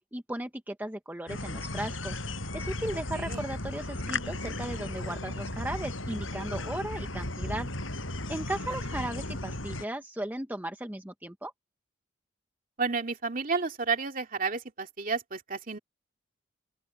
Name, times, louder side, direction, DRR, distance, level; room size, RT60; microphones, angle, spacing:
voice 1, 0.1-2.2 2.5-7.7 8.3-11.5, right 1 dB, 10° right, 0.9 m, -36 dB
sound 1, 1.3-9.9, left 2 dB, 80° left, 8.0 m, -35 dB
voice 2, 2.9-3.4 12.8-15.8, right 4 dB, 45° right, 2.5 m, -31 dB
open air
head